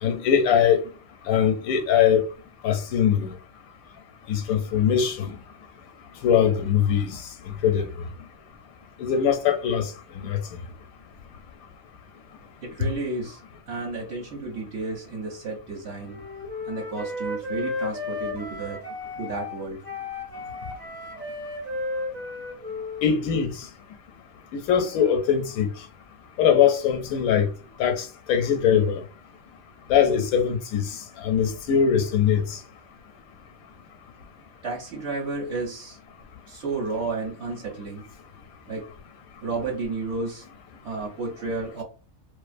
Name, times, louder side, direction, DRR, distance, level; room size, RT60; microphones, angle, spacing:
voice 1, 0.0-0.8 1.3-2.3 2.6-3.3 4.3-5.4 6.2-7.2 7.6-7.9 9.0-10.4 12.8-12.9 23.0-23.5 24.7-25.7 26.4-27.5 27.8-29.0 29.9-32.6, left 8 dB, 85° left, 1.0 m, -21 dB
voice 2, 12.6-13.4 13.7-16.2 16.6-18.8 19.2-19.8 34.6-36.0 36.5-38.0 38.7-38.9 39.4-40.4 40.8-41.8, right 3 dB, 60° right, 0.9 m, -32 dB
Wind instrument woodwind instrument, 16.0-23.5, left 2 dB, 25° right, 0.6 m, -34 dB
2.4 x 2.4 x 2.4 m
omnidirectional pair, 1.4 m